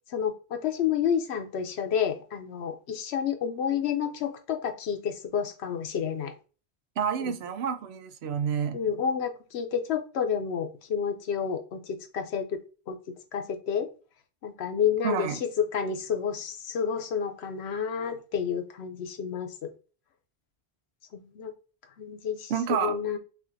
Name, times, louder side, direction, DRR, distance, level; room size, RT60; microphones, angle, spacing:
voice 1, 0.1-6.3 7.2-7.3 8.7-12.6 12.9-13.0 13.3-13.9 14.4-19.7 21.1-21.5 22.0-23.2, left 7 dB, 80° left, 0.9 m, -30 dB
voice 2, 7.0-8.8 15.0-15.4 22.5-23.0, right 7 dB, 75° right, 0.8 m, -29 dB
6.1 x 2.5 x 2.6 m
omnidirectional pair, 1.1 m